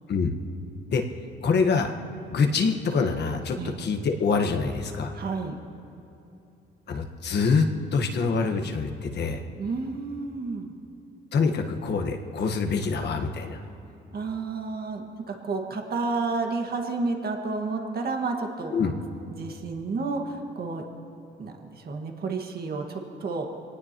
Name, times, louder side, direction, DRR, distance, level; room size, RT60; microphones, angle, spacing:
voice 1, 1.4-2.0 2.3-5.1 6.9-9.4 11.3-13.6 18.7-18.9, left 4 dB, 60° left, 4 dB, 1.4 m, -25 dB
voice 2, 5.1-5.6 9.6-10.7 14.1-18.9 19.3-20.8 21.4-23.5, right 3 dB, 50° right, 2 dB, 1.8 m, -31 dB
24.5 x 18.5 x 3.0 m, 2.9 s
cardioid pair, 90°, 20 cm